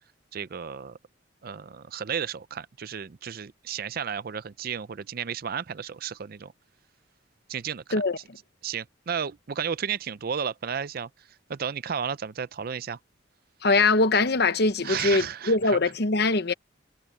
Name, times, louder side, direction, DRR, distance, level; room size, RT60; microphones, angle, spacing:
voice 1, 0.3-1.0 1.4-6.5 7.5-8.0 8.6-11.1 11.5-13.0 14.8-15.8, right 7 dB, 50° right, 0.5 m, -33 dB
voice 2, 13.6-16.5, left 3 dB, 55° left, 1.0 m, -22 dB
head